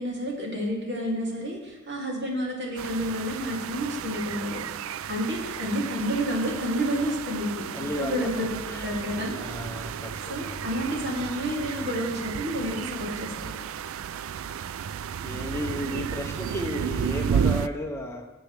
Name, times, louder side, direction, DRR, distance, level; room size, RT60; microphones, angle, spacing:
voice 1, 0.0-4.6 5.1-9.4 10.3-13.6, equal, 55° right, -3 dB, 3.1 m, -30 dB
sound 1, 2.8-17.7, right 7 dB, 80° right, 0.4 m, -33 dB
voice 2, 7.7-9.1 9.4-10.7 15.2-18.3, left 1 dB, 15° left, 3 dB, 0.8 m, -34 dB
18.5 x 7.8 x 3.4 m, 1.1 s
head